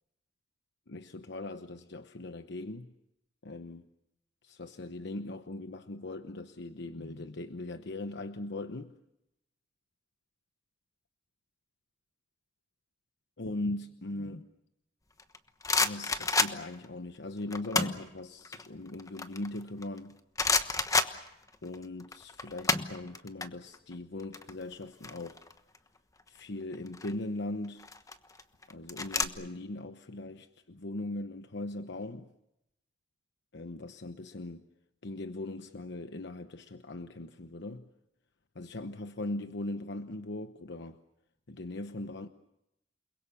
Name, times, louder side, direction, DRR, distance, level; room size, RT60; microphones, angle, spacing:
voice 1, 0.9-2.9 3.4-3.8 4.4-8.9 13.4-14.5 15.8-20.2 21.6-25.4 26.3-27.8 28.7-32.3 33.5-34.6 35.0-37.9 38.5-41.0 41.5-42.3, left 2 dB, 65° left, 1.0 m, -39 dB
sound 1, 15.2-16.9 17.5-18.1 18.4-20.0 20.4-21.8 22.0-23.5 23.7-23.9 24.2-25.8 26.7-27.1 27.8-29.2, left 3 dB, 20° left, 1.2 m, -29 dB
29.5 x 22.0 x 7.1 m
head